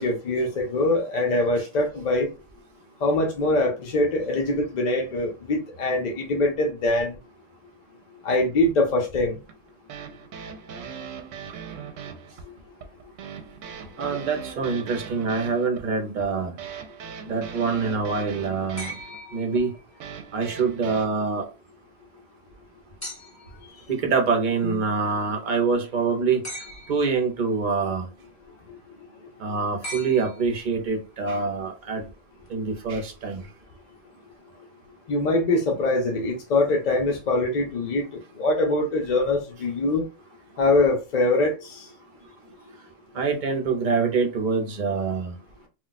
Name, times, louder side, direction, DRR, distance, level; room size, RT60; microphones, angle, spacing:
voice 1, 0.0-2.3 3.0-7.2 8.2-9.4 12.4-12.5 28.7-28.8 35.1-40.1 40.6-41.9, left 2 dB, 55° left, 0.5 m, -23 dB
sound 1, 9.5-21.1, right 7 dB, 80° right, 0.9 m, -40 dB
voice 2, 14.0-16.5 17.3-19.0 19.3-19.7 20.3-21.4 23.9-26.4 26.9-28.1 29.4-32.0 32.5-33.4 43.1-45.3, right 4 dB, 45° right, 0.7 m, -25 dB
sound 2, 18.8-20.1 23.0-23.6 26.4-27.2 29.8-30.9 32.5-32.6, equal, 15° left, 0.8 m, -39 dB
2.3 x 2.2 x 3.9 m
omnidirectional pair, 1.3 m